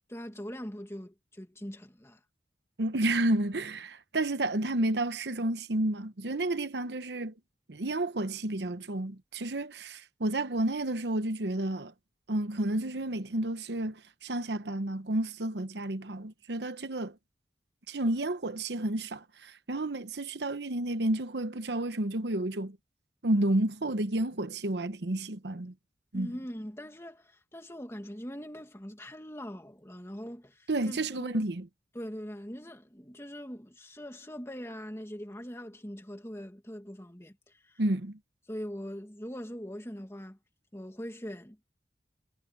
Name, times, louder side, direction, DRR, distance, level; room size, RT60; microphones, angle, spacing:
voice 1, 0.1-2.2 26.1-31.4 31.9-37.8 38.5-40.4 40.7-41.6, equal, 15° left, 2.2 m, -42 dB
voice 2, 2.8-7.3 7.7-11.9 12.3-17.2 17.9-22.8 23.2-25.7 26.1-26.3 30.7-31.7 37.8-38.2, right 1 dB, 80° right, 1.0 m, -31 dB
head